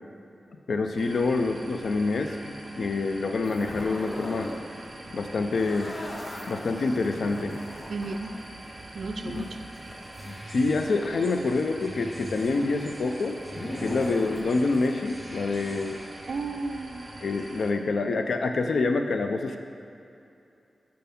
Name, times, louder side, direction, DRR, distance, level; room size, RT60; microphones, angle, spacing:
voice 1, 0.7-4.5 5.1-5.9 6.5-7.5 9.2-9.4 10.3-13.4 13.8-16.0 17.2-19.6, left 3 dB, 75° left, 6 dB, 0.4 m, -27 dB
sound 1, 1.0-17.7, right 1 dB, 40° right, 0.7 m, -45 dB
sound 2, 3.4-4.6 4.9-11.0 11.3-14.9, left 1 dB, 35° left, 0.7 m, -39 dB
voice 2, 7.9-8.3 8.9-9.6 16.3-17.1, right 3 dB, 70° right, 6 dB, 0.3 m, -33 dB
sound 3, 10.0-16.5, equal, 10° right, 0.9 m, -45 dB
5.2 x 4.6 x 5.1 m, 2.7 s
wide cardioid pair, 100°, 0 cm